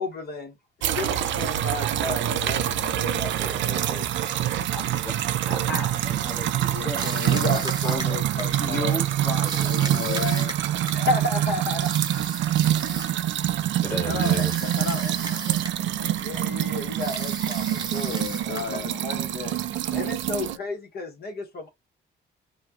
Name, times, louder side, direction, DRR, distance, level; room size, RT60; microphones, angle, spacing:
voice 1, 0.0-4.1 6.7-9.0 9.6-10.2 10.9-12.1 12.9-13.0 16.2-19.6 19.9-21.7, left 2 dB, 50° left, 1.2 m, -33 dB
sound 1, 0.8-20.6, right 12 dB, 70° right, 0.4 m, -26 dB
voice 2, 2.8-3.2 7.2-7.7 9.8-10.6 13.9-16.6 18.1-19.3 20.3-20.7, left 7 dB, 80° left, 0.6 m, -35 dB
voice 3, 5.5-7.1 7.5-8.3 8.6-10.0 13.8-14.5 19.9-20.1, equal, 10° left, 1.3 m, -34 dB
sound 2, 7.0-8.7 9.5-11.2 11.8-13.2 14.2-16.4 17.0-18.9, right 2 dB, 20° right, 0.9 m, -36 dB
2.5 x 2.3 x 2.7 m
cardioid pair, 90°, 20 cm